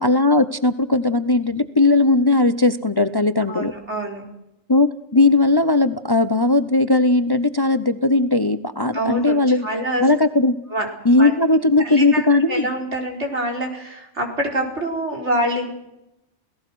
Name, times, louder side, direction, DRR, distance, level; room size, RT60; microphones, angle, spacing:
voice 1, 0.0-3.7 4.7-9.7 10.0-10.6 11.0-12.7, left 2 dB, 25° left, 12 dB, 0.8 m, -18 dB
voice 2, 3.5-4.3 8.9-10.1 10.7-11.6 11.8-15.7, right 1 dB, 70° right, 2 dB, 5.0 m, -26 dB
28.5 x 17.5 x 6.3 m, 0.86 s
omnidirectional pair, 1.2 m